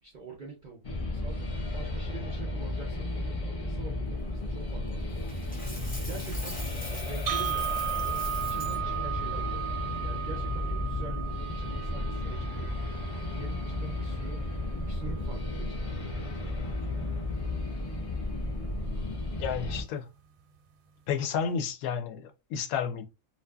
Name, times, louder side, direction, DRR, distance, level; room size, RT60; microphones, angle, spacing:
voice 1, 0.0-1.4 1.7-5.3 6.0-14.5 14.8-16.6, right 4 dB, 55° right, 0.5 m, -46 dB
sound 1, 0.8-19.8, left 2 dB, 55° left, 0.3 m, -33 dB
Coin (dropping), 5.3-8.8, equal, 10° left, 0.6 m, -42 dB
sound 2, 7.3-15.3, right 11 dB, 85° right, 1.1 m, -36 dB
voice 2, 19.4-20.1 21.1-23.1, left 7 dB, 80° left, 1.0 m, -31 dB
2.6 x 2.4 x 2.2 m
omnidirectional pair, 1.5 m